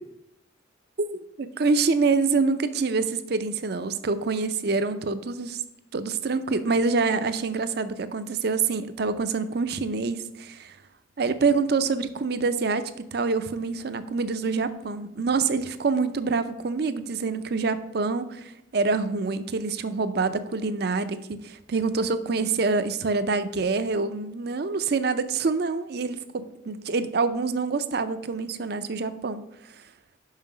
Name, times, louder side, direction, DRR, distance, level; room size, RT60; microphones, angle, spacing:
voice 1, 1.0-5.6 5.9-10.7 11.2-29.4, right 4 dB, 55° right, 11 dB, 0.5 m, -26 dB
5.7 x 5.5 x 6.0 m, 0.86 s
head